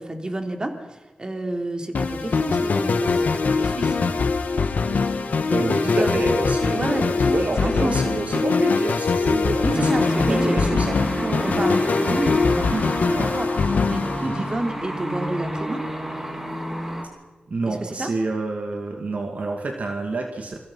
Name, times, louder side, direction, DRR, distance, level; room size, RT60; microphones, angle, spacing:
voice 1, 0.0-4.0 5.8-6.2 6.7-7.1 7.6-8.0 9.6-10.6 11.4-15.8 17.7-18.1, right 1 dB, 30° right, 4 dB, 3.4 m, -30 dB
sound 1, 1.9-14.9, left 4 dB, 75° left, 1.9 m, -22 dB
voice 2, 5.5-11.8 12.7-12.8 13.1-13.4 14.2-14.5 17.5-20.6, right 3 dB, 60° right, 3 dB, 2.3 m, -28 dB
sound 2, 9.7-17.1, equal, 15° right, 4.1 m, -29 dB
27.0 x 23.5 x 5.7 m, 1.1 s
wide cardioid pair, 75°, 3 cm